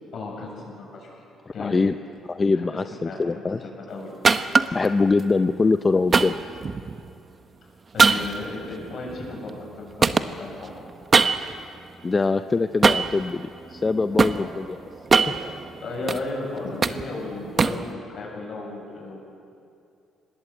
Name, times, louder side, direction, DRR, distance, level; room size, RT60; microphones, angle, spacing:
voice 1, 0.1-1.2 1.5-1.7 2.5-2.7 3.0-3.4 3.8-4.1 7.9-10.9 14.0-14.5 15.8-19.2, left 3 dB, 50° left, -1 dB, 8.0 m, -35 dB
voice 2, 1.6-1.9 2.3-3.6 4.7-6.4 12.0-14.8 15.2-15.3, left 3 dB, 20° left, 9 dB, 0.5 m, -23 dB
sound 1, 4.2-4.9 6.1-7.1 8.0-9.7 10.0-11.7 12.8-13.2 13.8-14.4 14.9-16.2 16.6-17.9, right 4 dB, 30° right, 0.8 m, -21 dB
26.0 x 20.5 x 8.1 m, 2.5 s
cardioid pair, 155°, 0 cm